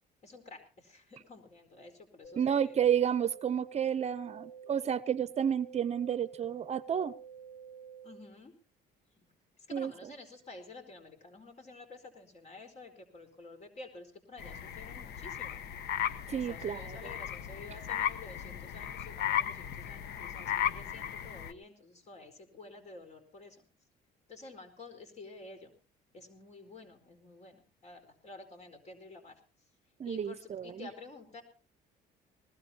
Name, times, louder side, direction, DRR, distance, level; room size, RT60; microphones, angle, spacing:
voice 1, 0.2-2.8 8.0-8.5 9.2-9.3 9.7-15.6 16.3-23.6 24.3-25.7 26.1-29.3 30.0-31.4, left 3 dB, 40° left, 4.5 m, -50 dB
sound 1, 2.2-8.2, right 7 dB, 5° right, 3.5 m, -49 dB
voice 2, 2.3-7.1 9.7-10.1 16.3-17.0 30.0-30.9, right 8 dB, 40° right, 0.7 m, -31 dB
sound 2, 14.4-21.5, left 10 dB, 75° left, 1.1 m, -36 dB
20.5 x 20.0 x 2.9 m
cardioid pair, 110°, 17 cm